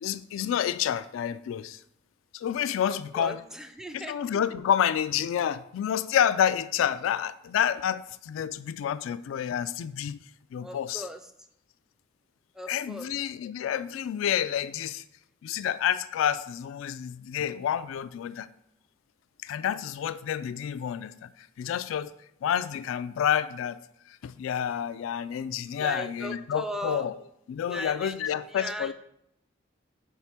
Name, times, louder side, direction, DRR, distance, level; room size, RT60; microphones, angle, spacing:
voice 1, 0.0-1.8 2.3-3.4 3.9-10.2 10.5-11.1 12.7-15.0 15.4-18.5 19.4-22.1 22.4-23.8 24.1-27.1 27.5-28.9, left 9 dB, 90° left, 15 dB, 0.3 m, -29 dB
voice 2, 2.9-4.2 10.6-11.2 12.6-13.1 25.8-27.1 27.7-28.9, equal, 5° right, 8 dB, 0.4 m, -38 dB
5.1 x 4.6 x 5.6 m, 0.77 s
head